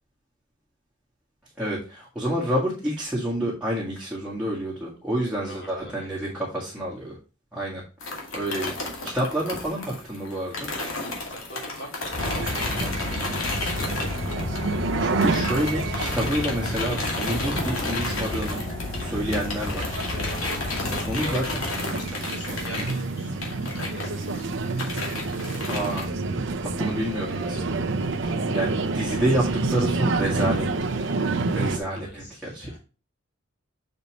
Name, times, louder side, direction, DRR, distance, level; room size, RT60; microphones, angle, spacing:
voice 1, 1.6-7.1 7.5-7.8 8.3-8.7 9.0-10.7 15.0-18.6 19.0-19.8 21.1-21.4 22.8-22.9 25.7-26.1 26.8-27.8 28.1-31.0 31.5-32.7, right 1 dB, 5° right, -6 dB, 1.7 m, -28 dB
voice 2, 5.2-6.1 8.3-8.6 11.3-12.8 20.4-21.4 22.1-23.3 23.6-24.3 31.9-32.8, equal, 55° left, -1 dB, 3.3 m, -43 dB
sound 1, 8.0-14.9 15.2-26.1, left 2 dB, 85° left, 2.2 m, -33 dB
sound 2, 12.1-21.8, left 3 dB, 25° left, 0.3 m, -33 dB
sound 3, 12.2-31.8, right 3 dB, 65° right, 0.8 m, -29 dB
6.7 x 5.4 x 3.0 m, 0.34 s
head